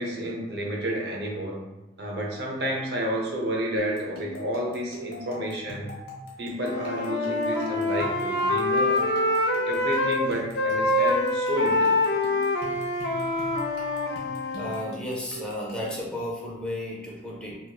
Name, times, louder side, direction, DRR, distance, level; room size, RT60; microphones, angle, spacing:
voice 1, 0.0-1.6 2.0-5.9 6.4-9.0 9.4-11.9, equal, 65° right, -1 dB, 0.7 m, -30 dB
sound 1, 3.8-16.1, equal, 60° left, 0.9 m, -42 dB
Wind instrument woodwind instrument, 6.6-10.2 10.5-14.8, left 2 dB, 75° left, 0.5 m, -25 dB
voice 2, 14.5-17.6, left 1 dB, 5° left, -5 dB, 0.7 m, -33 dB
3.0 x 2.9 x 2.3 m, 1.1 s
head